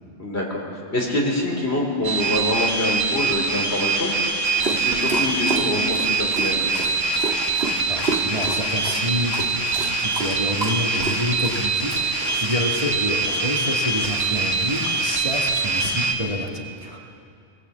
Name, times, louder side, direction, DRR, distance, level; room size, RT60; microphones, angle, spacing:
voice 1, 0.2-0.6 0.9-4.1 4.6-6.6, left 1 dB, 55° left, -1 dB, 4.3 m, -25 dB
sound 1, 2.0-16.1, right 3 dB, 80° right, 2.2 m, -24 dB
Dog, 4.4-16.0, right 3 dB, 55° right, 2.0 m, -33 dB
voice 2, 7.9-17.0, equal, 25° right, -2 dB, 2.1 m, -28 dB
20.5 x 19.5 x 8.3 m, 2.4 s
omnidirectional pair, 1.3 m